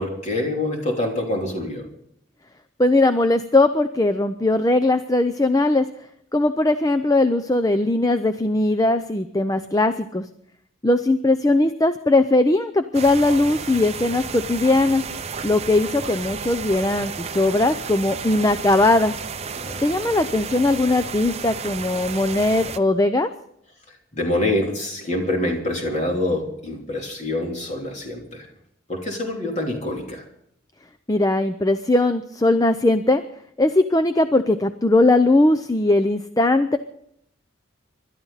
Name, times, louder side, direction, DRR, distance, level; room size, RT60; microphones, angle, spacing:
voice 1, 0.0-1.9 19.6-19.8 24.1-28.5 28.9-30.2, left 1 dB, 35° left, 0 dB, 3.3 m, -26 dB
voice 2, 2.8-5.9 6.3-10.3 10.8-15.0 15.4-19.1 19.8-23.3 31.1-33.2 33.6-36.8, left 2 dB, 15° left, 10 dB, 0.5 m, -19 dB
sound 1, 12.9-22.8, right 5 dB, 30° right, 0.6 m, -32 dB
26.0 x 12.5 x 4.1 m, 0.72 s
head